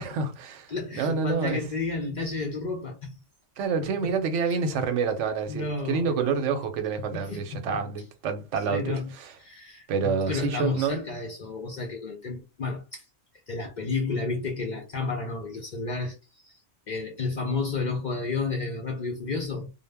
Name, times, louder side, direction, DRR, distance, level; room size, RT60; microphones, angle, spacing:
voice 1, 0.0-1.6 3.6-8.9 9.9-11.0, right 5 dB, 90° right, 0.9 m, -28 dB
voice 2, 0.7-3.2 3.8-4.1 4.5-4.6 5.5-6.5 7.0-7.8 8.6-9.1 9.4-13.1 13.5-16.6 16.9-19.7, left 3 dB, 60° left, 0.5 m, -32 dB
2.1 x 2.0 x 3.3 m
omnidirectional pair, 1.2 m